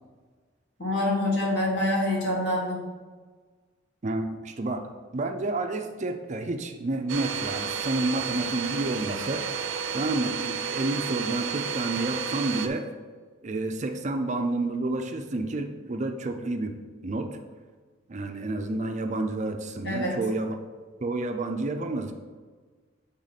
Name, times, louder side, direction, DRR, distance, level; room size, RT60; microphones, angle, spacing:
voice 1, 0.8-2.8 19.8-20.2, left 1 dB, 60° left, -3 dB, 1.7 m, -26 dB
voice 2, 4.0-4.9 5.1-9.5 9.9-12.9 13.4-16.8 17.0-17.4 18.1-20.6 21.0-22.1, right 2 dB, 40° right, 5 dB, 0.5 m, -30 dB
Domestic sounds home sounds, 7.1-12.7, right 6 dB, 85° right, 0.5 m, -31 dB
7.7 x 3.6 x 4.1 m, 1.4 s
head